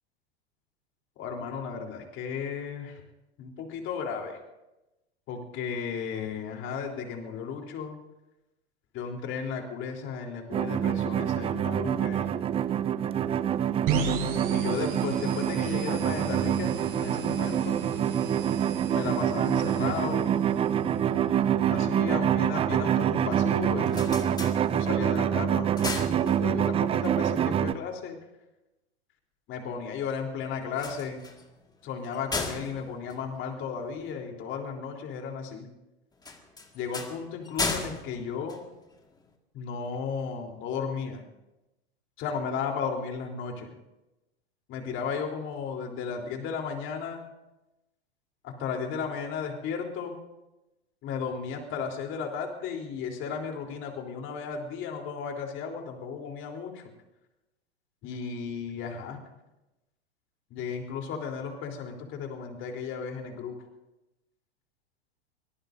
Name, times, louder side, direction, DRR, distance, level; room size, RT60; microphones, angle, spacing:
voice 1, 1.2-3.0 3.4-4.4 5.3-8.0 8.9-12.4 14.5-17.8 18.9-20.3 21.7-24.2 24.7-28.2 29.5-31.3 31.8-35.7 36.7-38.6 39.5-41.2 42.2-43.7 44.7-47.2 48.4-50.1 51.0-56.8 58.0-59.2 60.5-63.6, left 6 dB, 35° left, 3 dB, 3.7 m, -34 dB
sound 1, 10.5-27.7, right 9 dB, 20° right, 0.5 m, -26 dB
sound 2, 13.9-21.5, right 5 dB, 40° right, 6.7 m, -36 dB
sound 3, 23.7-25.2 25.5-26.9 30.6-34.1 36.2-39.2, left 3 dB, 10° left, 1.9 m, -36 dB
24.0 x 18.0 x 2.7 m, 0.96 s
hypercardioid pair, 105°, 33 cm